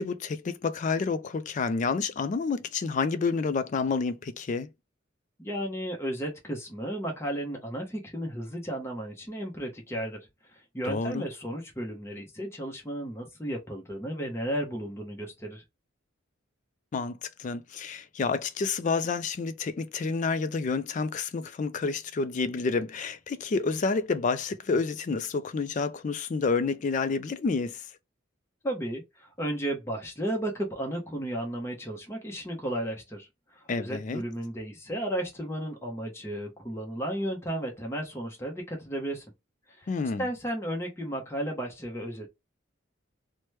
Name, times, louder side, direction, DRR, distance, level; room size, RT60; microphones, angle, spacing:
voice 1, 0.0-4.7 10.8-11.2 16.9-27.9 33.7-34.2 39.9-40.3, left 4 dB, 40° left, 0.3 m, -29 dB
voice 2, 5.4-10.2 10.5-15.6 28.6-39.3 39.7-39.9 40.2-42.3, right 1 dB, 15° left, 0.7 m, -34 dB
3.0 x 2.1 x 3.1 m
head